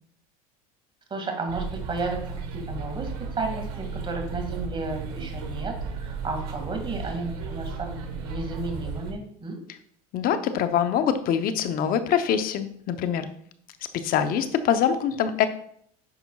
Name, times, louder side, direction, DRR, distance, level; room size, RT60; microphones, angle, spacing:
voice 1, 1.1-2.2 2.5-9.6, right 3 dB, 25° right, 3 dB, 2.0 m, -33 dB
sound 1, 1.5-9.1, right 5 dB, 85° right, 1.3 m, -34 dB
voice 2, 10.1-13.3 13.9-15.5, left 8 dB, 50° left, 10 dB, 0.8 m, -24 dB
9.6 x 5.7 x 2.3 m, 0.65 s
supercardioid pair, 105°, 19 cm